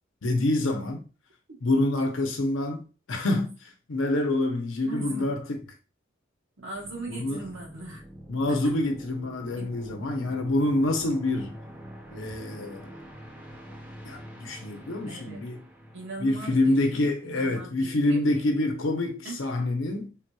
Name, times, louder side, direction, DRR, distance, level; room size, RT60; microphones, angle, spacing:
voice 1, 0.2-1.0 1.6-5.6 7.1-7.5 8.3-11.6 12.1-12.9 14.0-15.6 16.2-20.2, left 2 dB, 85° left, 0.7 m, -27 dB
voice 2, 4.8-5.3 6.6-8.0 8.5-8.7 9.6-9.7 15.1-15.5 15.9-18.4 19.2-19.7, right 2 dB, 80° right, 1.2 m, -40 dB
sound 1, 6.7-17.5, equal, 10° right, 0.5 m, -46 dB
3.5 x 2.9 x 2.2 m
head